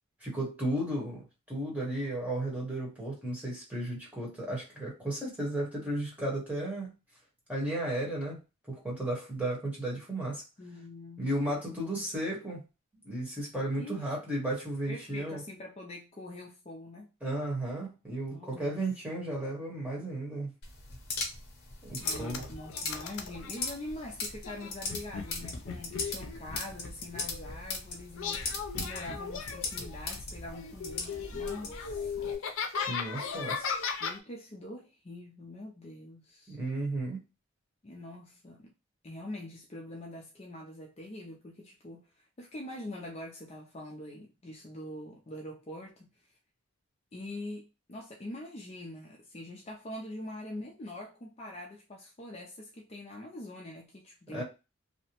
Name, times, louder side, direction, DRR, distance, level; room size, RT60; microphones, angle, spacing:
voice 1, 0.2-6.9 7.5-8.4 8.7-10.4 11.2-12.6 13.0-15.4 17.2-20.5 21.8-22.5 32.9-33.7 36.5-37.2 54.3-54.4, right 1 dB, 5° right, 1.0 m, -34 dB
voice 2, 10.6-11.3 11.7-12.1 13.8-14.1 14.9-17.1 18.3-18.8 22.0-32.4 34.0-36.6 37.8-38.7 39.0-46.1 47.1-54.4, left 1 dB, 30° left, 0.4 m, -44 dB
sound 1, 20.6-32.4, left 3 dB, 50° left, 0.8 m, -39 dB
sound 2, 22.0-23.8 24.4-27.7 28.2-30.2 30.5-34.2, left 6 dB, 85° left, 0.5 m, -37 dB
2.7 x 2.1 x 2.9 m
head